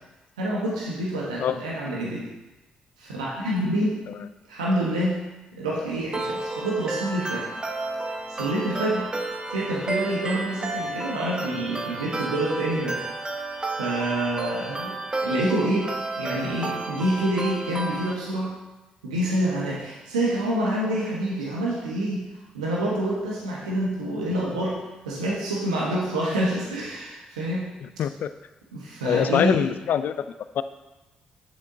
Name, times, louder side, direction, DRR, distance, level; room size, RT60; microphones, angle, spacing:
voice 1, 0.4-2.2 3.0-4.0 4.5-5.1 5.6-7.5 8.3-9.0 9.5-13.0 13.8-14.9 15.2-18.5 19.0-22.2 22.5-24.8 25.0-27.6 28.7-29.6, right 1 dB, 90° right, -5 dB, 1.1 m, -27 dB
sound 1, 6.1-18.1, right 2 dB, 25° right, 1.0 m, -31 dB
voice 2, 27.8-28.3 29.0-30.3 30.5-30.6, left 9 dB, 60° left, 12 dB, 0.3 m, -24 dB
8.4 x 7.1 x 2.7 m, 1.1 s
hypercardioid pair, 40°, 4 cm